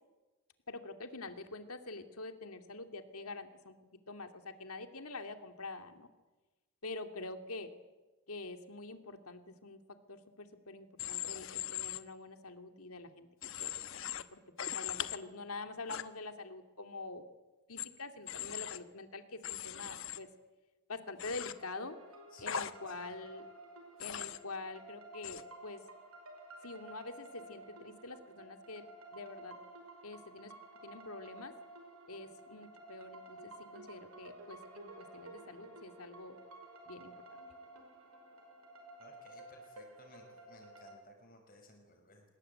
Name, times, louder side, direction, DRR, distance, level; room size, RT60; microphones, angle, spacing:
voice 1, 0.7-3.8 4.1-6.1 6.8-7.7 8.3-13.3 13.6-14.4 14.7-17.2 17.7-20.3 20.9-22.0 22.4-23.4 24.0-25.8 26.6-28.9 29.1-29.6 30.0-30.5 30.8-31.5 32.1-36.4 36.9-37.1, left 3 dB, 85° left, 7 dB, 2.5 m, -46 dB
Human voice / Train, 11.0-12.0 13.4-14.2 14.6-15.2 15.9-16.0 17.8-17.9 18.3-18.8 19.4-20.2 21.2-21.5 22.5-22.7 24.0-24.4 25.2-25.4, left 10 dB, 60° left, 1.1 m, -39 dB
sound 1, 21.5-41.0, right 2 dB, 85° right, 5.3 m, -53 dB
voice 2, 22.3-23.1 39.0-42.2, left 2 dB, 40° left, 3 dB, 6.0 m, -59 dB
25.0 x 20.5 x 8.8 m, 1.2 s
head